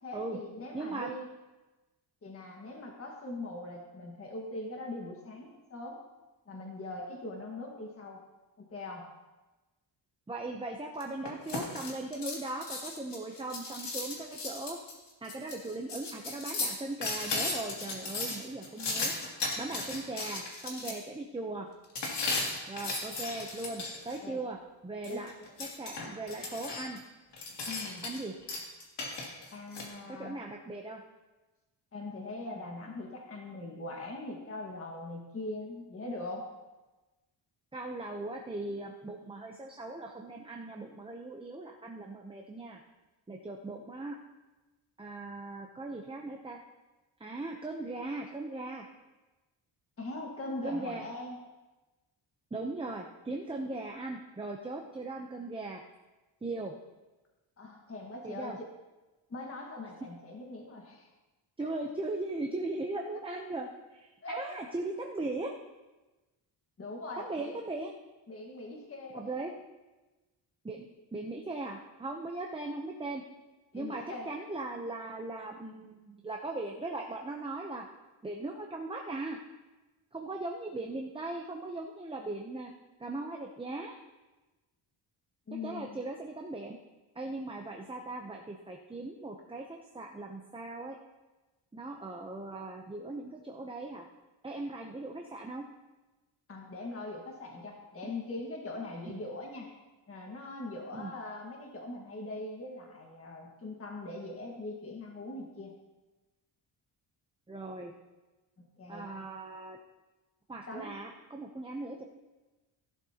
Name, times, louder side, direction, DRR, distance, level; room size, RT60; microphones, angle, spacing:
voice 1, 0.0-1.2 2.2-6.0 6.5-8.2 8.6-9.1 24.2-24.4 25.1-25.2 27.6-28.1 29.5-30.4 31.9-36.5 50.0-51.4 57.6-58.5 59.3-61.1 61.6-61.7 64.2-64.6 66.8-67.5 68.3-69.3 73.7-74.3 85.5-86.0 96.5-99.7 100.1-105.7 108.8-109.1 110.7-110.9, left 2 dB, 30° left, 0 dB, 1.6 m, -41 dB
voice 2, 0.7-1.1 10.3-14.8 15.2-19.1 19.6-21.7 22.7-25.3 25.6-27.0 28.0-28.3 30.1-31.0 37.7-42.8 43.3-44.2 45.0-46.6 47.2-48.8 50.6-51.0 52.5-55.8 56.4-56.7 58.2-58.6 61.6-65.6 67.2-67.9 69.1-69.5 70.6-73.2 73.7-77.9 78.2-79.4 80.1-82.7 83.0-83.9 85.6-86.8 87.2-91.0 91.7-94.1 94.4-95.7 98.0-98.1 100.9-101.1 107.5-107.9 108.9-109.8 110.5-112.1, right 2 dB, 10° right, 1 dB, 0.6 m, -39 dB
sound 1, 11.0-20.9 22.0-24.2 25.0-27.0 27.3-28.2 28.5-29.9, left 3 dB, 65° left, 2.6 m, -36 dB
16.5 x 11.5 x 2.9 m, 1.1 s
wide cardioid pair, 165°, 45 cm